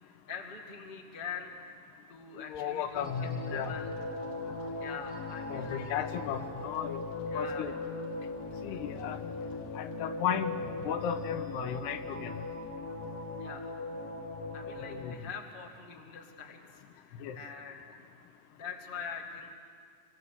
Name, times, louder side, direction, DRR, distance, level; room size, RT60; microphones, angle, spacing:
voice 1, 0.0-1.5 2.1-3.9 4.8-5.9 7.3-7.7 13.4-13.7 14.5-17.9 18.5-19.5, left 6 dB, 35° left, 2 dB, 0.7 m, -44 dB
voice 2, 2.4-3.7 5.5-7.0 7.3-7.8 8.6-9.2 9.8-10.5 10.8-12.3 14.8-15.1 17.2-17.4, left 9 dB, 85° left, 9 dB, 3.1 m, -35 dB
sound 1, 2.9-15.2, left 3 dB, 50° left, 2.0 m, -39 dB
26.5 x 24.0 x 6.8 m, 2.1 s
omnidirectional pair, 4.6 m